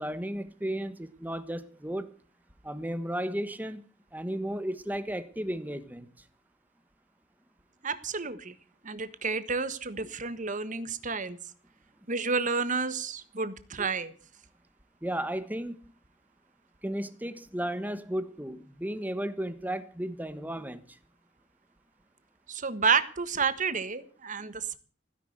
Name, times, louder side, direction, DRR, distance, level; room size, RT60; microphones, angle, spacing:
voice 1, 0.0-2.1 2.6-3.8 4.1-6.1 15.0-15.8 16.8-21.0, right 1 dB, 10° right, 1.3 m, -34 dB
voice 2, 7.8-8.5 8.8-11.4 12.1-14.1 22.5-24.8, right 5 dB, 45° right, 1.4 m, -30 dB
16.0 x 10.5 x 8.0 m
head